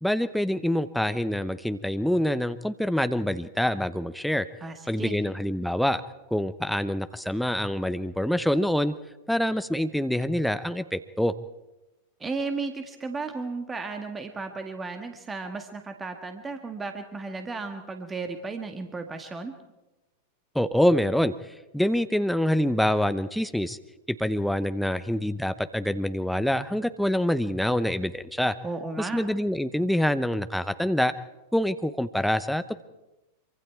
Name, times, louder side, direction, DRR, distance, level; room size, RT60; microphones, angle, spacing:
voice 1, 0.0-4.5 4.9-6.0 6.3-8.9 9.3-11.3 20.5-23.8 24.2-28.6 29.0-31.1 31.5-32.8, left 1 dB, ahead, 11 dB, 0.9 m, -26 dB
voice 2, 4.6-5.2 12.2-19.5 28.6-29.2, right 4 dB, 15° right, 6 dB, 1.9 m, -34 dB
26.0 x 24.5 x 4.7 m, 0.99 s
figure-of-eight pair, 90°, 0 cm